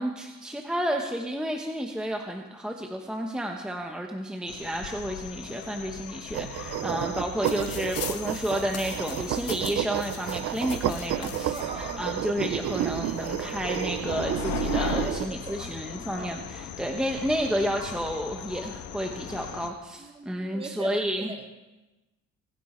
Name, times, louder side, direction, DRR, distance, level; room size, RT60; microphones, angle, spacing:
voice 1, 0.0-21.3, equal, 5° right, 2 dB, 0.9 m, -31 dB
sound 1, 4.5-19.7, left 9 dB, 70° left, 1.3 m, -39 dB
sound 2, 6.3-15.3, right 12 dB, 50° right, 0.5 m, -31 dB
sound 3, 7.4-11.6 12.5-12.6 12.8-13.8 14.5-14.9, left 9 dB, 55° left, 1.3 m, -42 dB
voice 2, 11.5-12.0 15.0-15.7 16.2-16.3 20.0-21.5, right 3 dB, 20° right, 7 dB, 1.2 m, -40 dB
24.5 x 11.0 x 4.3 m, 1.1 s
cardioid pair, 165°, 30 cm